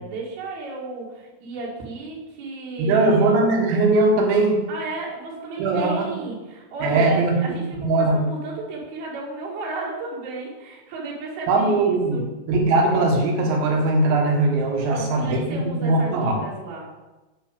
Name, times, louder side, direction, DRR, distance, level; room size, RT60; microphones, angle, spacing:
voice 1, 0.0-3.4 4.7-12.2 14.9-16.9, right 3 dB, 55° right, -5 dB, 3.6 m, -33 dB
voice 2, 2.8-4.6 5.6-6.1 6.8-7.3 7.8-8.2 11.5-16.3, right 2 dB, 70° right, 1 dB, 3.9 m, -20 dB
9.0 x 6.8 x 6.9 m, 1.1 s
omnidirectional pair, 5.8 m